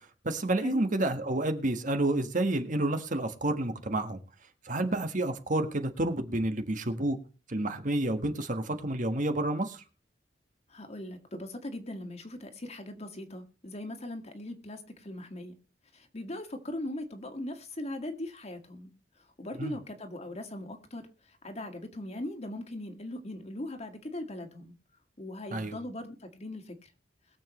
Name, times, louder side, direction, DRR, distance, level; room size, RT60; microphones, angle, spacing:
voice 1, 0.2-4.2 4.6-7.2 7.5-9.8 19.6-19.7 25.5-25.8, right 1 dB, 45° right, 1.6 m, -29 dB
voice 2, 10.7-15.6 15.9-24.8 25.2-26.9, left 1 dB, 40° left, 2.0 m, -40 dB
22.0 x 7.4 x 3.1 m
head